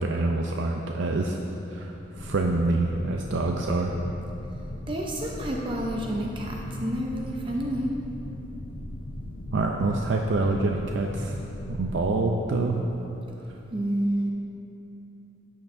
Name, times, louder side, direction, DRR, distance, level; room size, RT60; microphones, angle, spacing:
voice 1, 0.0-1.4 1.7-4.0 9.5-11.4 11.7-12.8, right 2 dB, 75° right, 1 dB, 0.5 m, -26 dB
sound 1, 2.2-12.2, left 1 dB, 90° left, 0.7 m, -38 dB
voice 2, 4.9-7.9 13.7-14.3, right 1 dB, 25° right, -1 dB, 0.6 m, -29 dB
12.0 x 8.4 x 2.6 m, 3.0 s
head